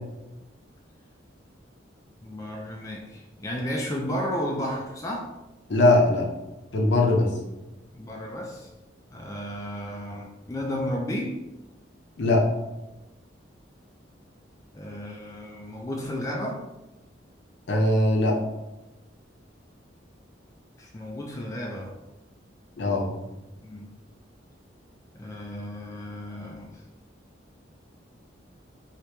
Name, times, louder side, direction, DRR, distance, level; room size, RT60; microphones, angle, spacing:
voice 1, 2.2-5.3 7.9-8.7 9.1-11.4 14.7-16.6 20.8-22.0 23.6-23.9 25.2-26.8, equal, 15° left, -1 dB, 0.3 m, -33 dB
voice 2, 5.7-6.3 6.7-7.3 12.2-12.5 17.7-18.4 22.8-23.1, left 2 dB, 65° left, 0 dB, 0.6 m, -20 dB
2.9 x 2.8 x 3.2 m, 1.0 s
head